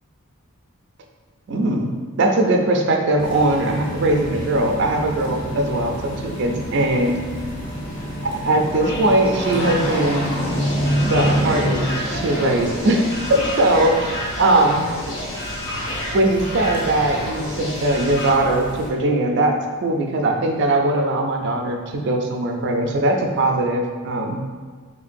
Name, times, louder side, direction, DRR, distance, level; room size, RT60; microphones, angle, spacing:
voice 1, 1.5-7.2 8.2-10.3 10.9-14.9 16.1-24.4, right 1 dB, 55° right, 3 dB, 0.4 m, -20 dB
sound 1, 3.2-18.9, equal, 40° left, 0.6 m, -28 dB
sound 2, 8.7-18.3, left 1 dB, 60° left, 1.2 m, -31 dB
3.6 x 3.2 x 2.5 m, 1.5 s
head